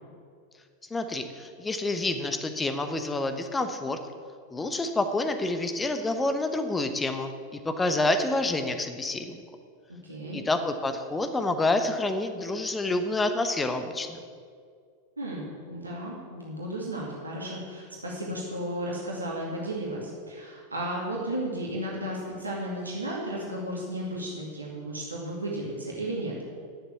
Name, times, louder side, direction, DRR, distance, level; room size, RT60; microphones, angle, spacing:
voice 1, 0.9-4.0 4.5-9.4 10.3-14.2, left 2 dB, 10° left, 8 dB, 0.9 m, -28 dB
voice 2, 9.9-10.4 15.2-26.3, right 1 dB, 80° right, -4 dB, 2.3 m, -34 dB
10.5 x 7.3 x 8.1 m, 2.1 s
figure-of-eight pair, 90°, 0 cm